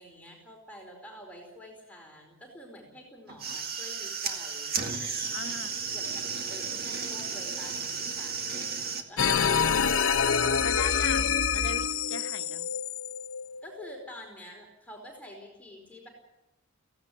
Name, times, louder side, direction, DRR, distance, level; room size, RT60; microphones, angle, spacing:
voice 1, 0.0-4.8 5.9-6.2 6.5-10.4 13.6-16.1, equal, 10° left, 0 dB, 4.7 m, -48 dB
sound 1, 3.3-9.0, right 5 dB, 50° right, 2.0 m, -34 dB
voice 2, 5.3-5.9 10.6-12.7, left 5 dB, 65° left, 8 dB, 1.2 m, -39 dB
sound 2, 9.2-14.1, left 6 dB, 80° left, 0.8 m, -26 dB
17.0 x 16.5 x 9.8 m, 0.91 s
head